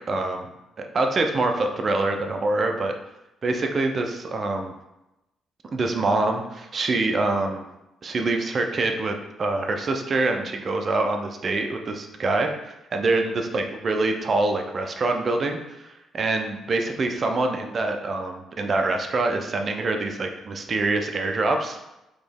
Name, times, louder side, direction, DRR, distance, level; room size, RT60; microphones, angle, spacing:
voice 1, 0.1-0.5 0.8-2.9 3.4-4.7 5.7-7.6 8.0-21.8, right 2 dB, 40° right, 4 dB, 0.5 m, -25 dB
4.1 x 3.0 x 3.5 m, 0.94 s
cardioid pair, 110°, 0 cm